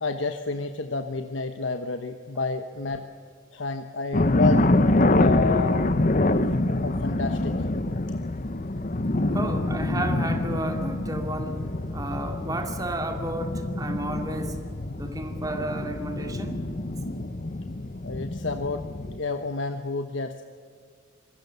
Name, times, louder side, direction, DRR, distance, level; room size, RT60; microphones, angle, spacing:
voice 1, 0.0-3.1 3.5-4.6 5.1-5.9 6.8-7.7 18.0-18.9 19.2-20.4, left 3 dB, 75° left, 7 dB, 1.1 m, -30 dB
sound 1, 4.1-19.2, left 2 dB, 45° left, 0.9 m, -26 dB
voice 2, 9.3-11.7 11.9-14.6 15.0-16.6, right 1 dB, 20° right, 5 dB, 2.4 m, -32 dB
25.5 x 20.0 x 7.0 m, 2.1 s
head